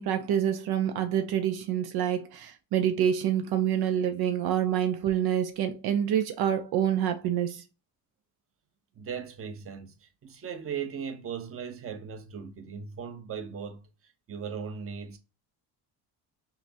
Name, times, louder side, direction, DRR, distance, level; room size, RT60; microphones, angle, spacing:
voice 1, 0.0-7.6, right 9 dB, 70° right, 0.6 m, -27 dB
voice 2, 8.9-15.2, right 7 dB, 35° right, 0.8 m, -38 dB
5.7 x 2.1 x 2.7 m
cardioid pair, 110°, 39 cm